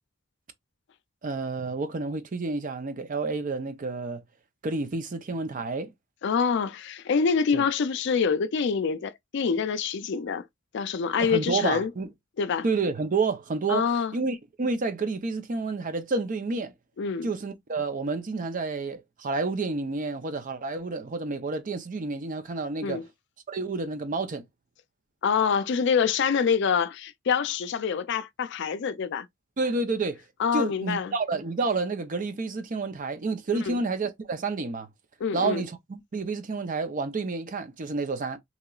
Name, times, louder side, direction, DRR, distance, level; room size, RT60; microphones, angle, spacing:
voice 1, 1.2-4.2 4.6-5.9 7.5-7.6 11.2-12.1 12.6-16.7 17.2-23.0 23.5-24.4 29.6-30.2 30.5-34.9 35.3-38.4, right 3 dB, 40° right, 0.5 m, -29 dB
voice 2, 6.2-10.5 10.7-11.9 12.4-12.6 13.7-14.1 17.0-17.3 22.8-23.1 25.2-29.3 30.4-31.1 33.7-33.8 35.2-35.6, left 6 dB, 60° left, 0.4 m, -26 dB
2.9 x 2.8 x 2.3 m
head